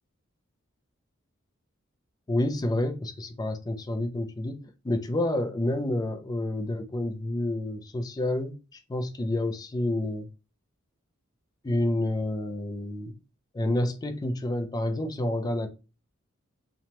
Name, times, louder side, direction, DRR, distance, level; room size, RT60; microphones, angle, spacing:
voice 1, 2.3-8.5 8.9-10.3 11.6-13.1 13.5-15.7, left 1 dB, 20° left, 0.3 m, -29 dB
2.9 x 2.1 x 2.8 m
head